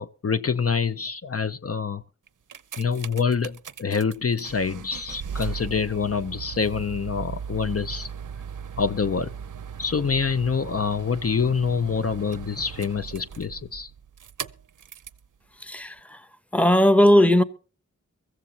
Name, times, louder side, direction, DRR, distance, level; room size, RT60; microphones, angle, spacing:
voice 1, 0.0-2.0 2.8-8.1 8.8-9.3 9.8-13.9, left 5 dB, 50° left, 0.6 m, -26 dB
sound 1, 2.3-15.3 16.0-16.1, right 7 dB, 80° right, 0.6 m, -38 dB
voice 2, 15.6-16.2 16.5-17.4, left 1 dB, 5° left, 0.9 m, -18 dB
23.0 x 14.5 x 2.8 m
wide cardioid pair, 85°, 31 cm